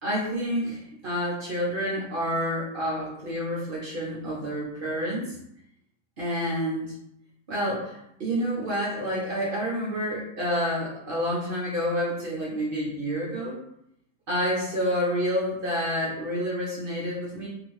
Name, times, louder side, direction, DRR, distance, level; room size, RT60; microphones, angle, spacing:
voice 1, 0.0-5.4 6.2-6.9 7.5-13.6 14.3-17.5, equal, 70° right, -5 dB, 0.5 m, -29 dB
2.7 x 2.5 x 3.1 m, 0.78 s
omnidirectional pair, 1.8 m